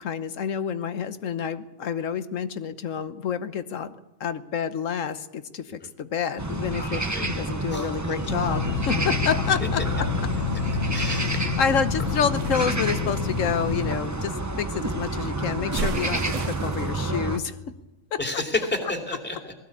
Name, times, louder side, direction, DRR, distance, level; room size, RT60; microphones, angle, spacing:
voice 1, 0.0-10.1 11.4-17.5 18.1-18.4, left 7 dB, 70° left, 12 dB, 1.3 m, -28 dB
sound 1, 6.4-17.4, right 2 dB, 15° right, 0.9 m, -29 dB
voice 2, 6.7-7.9 10.9-11.5 18.2-19.5, left 2 dB, 5° left, 3 dB, 2.6 m, -31 dB
sound 2, 8.3-14.0, left 6 dB, 85° left, 1.6 m, -28 dB
sound 3, 12.4-14.3 15.7-17.0, right 4 dB, 65° right, 1.5 m, -34 dB
20.0 x 15.5 x 8.5 m, 1.0 s
omnidirectional pair, 1.4 m